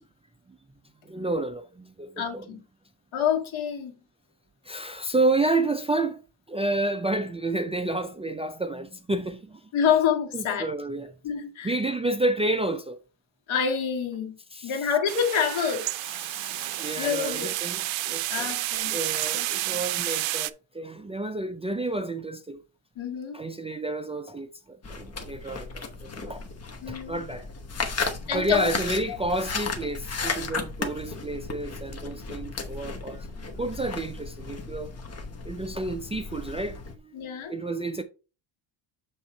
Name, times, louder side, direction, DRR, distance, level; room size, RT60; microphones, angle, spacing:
voice 1, 1.0-2.5 4.6-6.2 6.5-9.7 10.3-11.2 11.6-13.0 14.5-14.8 16.1-18.5 18.9-22.6 23.3-26.4 26.9-27.5 28.3-33.3 33.6-35.0 35.4-38.0, right 2 dB, 15° right, 0.3 m, -30 dB
voice 2, 2.2-2.6 3.1-4.0 9.7-10.7 11.2-11.8 13.5-14.4 14.6-15.9 17.0-17.5 18.3-19.0 19.3-19.8 23.0-23.4 26.8-27.2 27.9-28.7 29.1-29.2 37.1-37.5, left 7 dB, 80° left, 1.8 m, -27 dB
sound 1, 15.1-20.5, right 17 dB, 75° right, 0.5 m, -30 dB
sound 2, 24.8-36.9, left 4 dB, 30° left, 1.1 m, -35 dB
7.3 x 3.6 x 4.2 m
cardioid pair, 130°, 47 cm